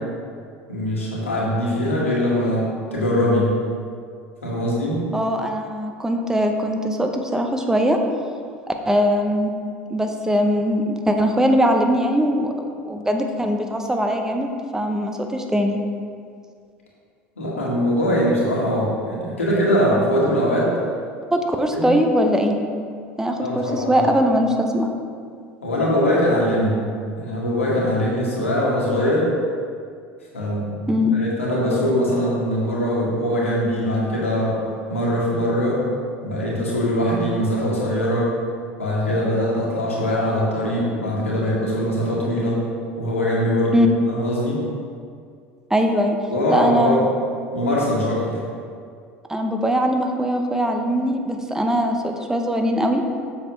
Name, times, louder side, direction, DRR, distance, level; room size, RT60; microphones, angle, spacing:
voice 1, 0.7-3.5 4.4-5.0 17.4-20.7 21.7-21.9 23.4-24.0 25.6-26.8 27.1-29.3 30.3-34.6 34.9-35.8 36.2-38.3 38.8-42.6 43.0-44.6 46.3-47.0 47.5-48.4, equal, 90° left, -5 dB, 1.7 m, -22 dB
voice 2, 5.1-8.0 8.7-9.5 9.9-15.8 21.3-22.6 23.2-24.9 30.9-31.2 43.7-43.9 45.7-46.2 46.5-47.1 49.3-53.0, equal, 10° right, 4 dB, 0.8 m, -21 dB
7.6 x 6.1 x 3.2 m, 2.2 s
hypercardioid pair, 75°, 7 cm